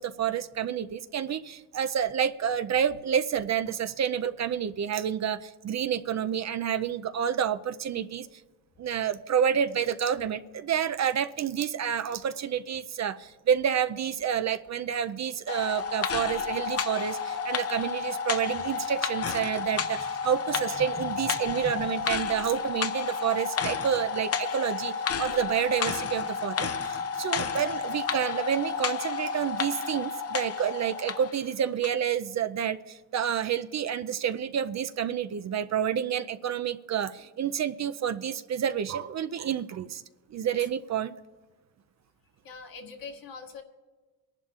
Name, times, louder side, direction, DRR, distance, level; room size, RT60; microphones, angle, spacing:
voice 1, 0.0-8.3 8.8-10.4 10.7-24.9 25.2-40.0 40.3-41.1, right 8 dB, 45° right, 11 dB, 0.5 m, -29 dB
sound 1, 15.5-31.4 31.8-31.9, left 6 dB, 35° left, 0.7 m, -31 dB
voice 2, 20.2-22.1 40.6-40.7 42.4-43.6, left 3 dB, 60° left, 2 dB, 1.8 m, -44 dB
22.5 x 11.0 x 2.4 m, 1.3 s
supercardioid pair, 75°, 40 cm